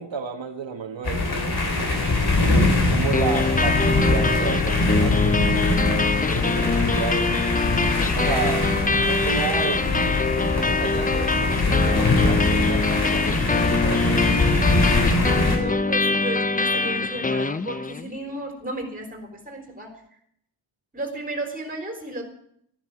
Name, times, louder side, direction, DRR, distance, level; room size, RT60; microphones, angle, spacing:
voice 1, 0.0-1.5 2.4-6.0 6.3-7.5 8.2-13.3 13.6-14.6, right 6 dB, 90° right, 3 dB, 1.7 m, -32 dB
sound 1, 1.0-15.6, left 2 dB, 55° left, 3.3 m, -22 dB
sound 2, 3.1-18.1, left 3 dB, 20° left, 0.5 m, -24 dB
voice 2, 15.5-19.9 20.9-22.2, right 1 dB, 20° right, 4 dB, 4.0 m, -33 dB
14.5 x 10.5 x 7.8 m, 0.68 s
wide cardioid pair, 125°, 44 cm